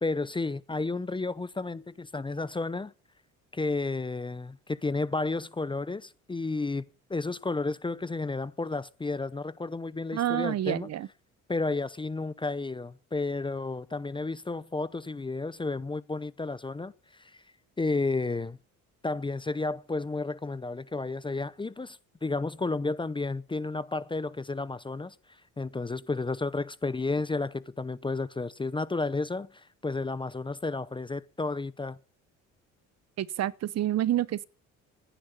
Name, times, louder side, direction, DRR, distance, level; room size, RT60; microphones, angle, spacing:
voice 1, 0.0-2.9 3.5-6.8 7.1-10.9 11.5-16.9 17.2-17.3 17.8-18.6 19.0-25.1 25.6-32.0, left 3 dB, 15° left, 0.7 m, -32 dB
voice 2, 10.1-11.1 33.2-34.4, right 12 dB, 55° right, 0.9 m, -28 dB
15.5 x 10.0 x 8.3 m
cardioid pair, 95°, 32 cm